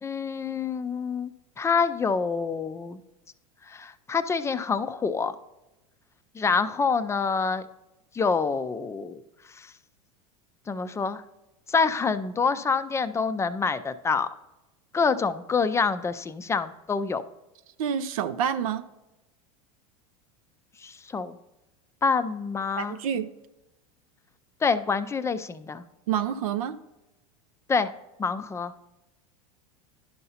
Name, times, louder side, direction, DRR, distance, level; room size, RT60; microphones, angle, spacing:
voice 1, 0.0-1.3 1.6-3.0 3.7-5.4 6.4-7.6 8.1-9.2 9.6-9.7 10.7-11.2 11.7-14.3 14.9-17.2 20.8-21.4 22.0-23.0 24.6-25.8 27.7-27.9 28.2-28.7, left 5 dB, 15° left, 12 dB, 0.4 m, -26 dB
voice 2, 17.8-18.8 22.8-23.3 26.1-26.8, right 8 dB, 80° right, 10 dB, 0.4 m, -28 dB
11.0 x 5.5 x 2.8 m, 0.99 s
hypercardioid pair, 95°, 18 cm